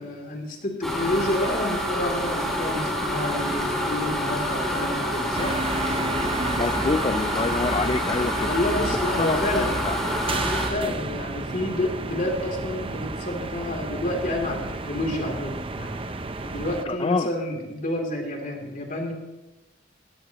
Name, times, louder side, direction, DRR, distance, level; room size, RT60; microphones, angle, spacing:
voice 1, 0.0-5.6 8.4-9.8 10.5-16.0 16.4-19.1, left 1 dB, 45° left, 1 dB, 3.0 m, -29 dB
sound 1, 0.8-10.7, equal, ahead, 3.6 m, -27 dB
sound 2, 5.3-16.8, right 2 dB, 30° right, 0.6 m, -32 dB
voice 2, 6.5-8.5 9.1-10.0 16.9-17.3, left 3 dB, 30° left, 10 dB, 0.4 m, -26 dB
18.5 x 16.0 x 3.0 m, 1.0 s
head